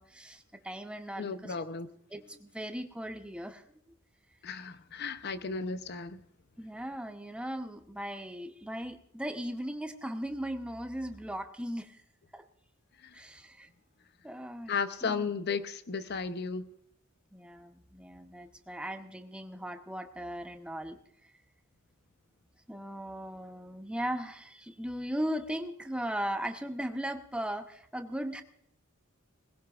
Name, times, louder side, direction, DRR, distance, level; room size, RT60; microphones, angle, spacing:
voice 1, 0.0-1.5 2.1-3.6 6.6-12.0 12.3-12.4 13.1-13.7 14.2-15.3 17.3-21.0 22.7-28.4, equal, 5° right, 0.9 m, -38 dB
voice 2, 1.2-1.9 4.4-6.2 14.7-16.7, left 5 dB, 50° left, 0.8 m, -34 dB
21.0 x 16.5 x 2.5 m
head